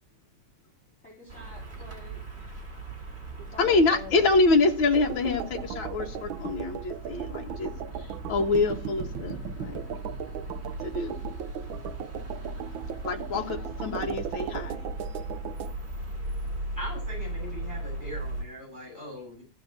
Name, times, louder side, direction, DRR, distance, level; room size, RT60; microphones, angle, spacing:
voice 1, 1.0-2.2 3.4-4.3 15.7-16.6, left 2 dB, 30° left, 4.1 m, -47 dB
sound 1, 1.3-18.4, right 2 dB, 30° right, 2.7 m, -38 dB
voice 2, 3.6-7.7 8.3-9.8 10.8-11.2 13.0-14.8, left 3 dB, 75° left, 2.4 m, -26 dB
sound 2, 4.9-15.7, right 9 dB, 75° right, 1.5 m, -38 dB
voice 3, 16.8-19.4, equal, 10° left, 7.3 m, -40 dB
14.5 x 5.3 x 7.7 m
omnidirectional pair, 2.2 m